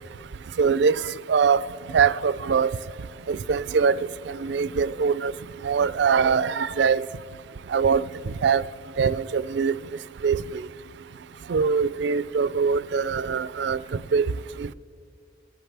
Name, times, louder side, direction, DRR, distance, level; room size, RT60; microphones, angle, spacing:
voice 1, 0.6-1.0 1.3-1.6 1.9-2.7 3.3-4.0 4.4-5.3 5.6-7.0 7.7-8.0 8.4-8.6 9.0-9.7 10.2-10.4 11.5-13.8 14.1-14.3, right 6 dB, 60° right, 17 dB, 0.4 m, -22 dB
20.5 x 11.0 x 3.4 m, 2.4 s
head